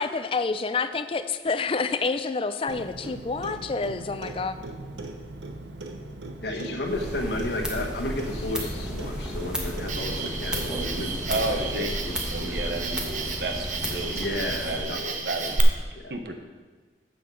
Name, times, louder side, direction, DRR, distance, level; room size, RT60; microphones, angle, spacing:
voice 1, 0.0-4.6, left 4 dB, 30° left, 11 dB, 0.4 m, -28 dB
Clock, 2.7-11.8, right 2 dB, 90° right, 0.9 m, -39 dB
voice 2, 6.4-13.0 14.1-15.2 16.0-16.1, left 1 dB, 75° left, 2 dB, 1.3 m, -33 dB
sound 1, 6.8-14.8, equal, 5° right, 1.2 m, -34 dB
Cricket, 9.9-15.6, right 4 dB, 45° right, 0.8 m, -33 dB
voice 3, 11.3-11.9 12.3-15.0 15.2-15.7 16.1-16.3, right 2 dB, 65° right, 5 dB, 1.1 m, -32 dB
7.8 x 6.7 x 6.3 m, 1.4 s
head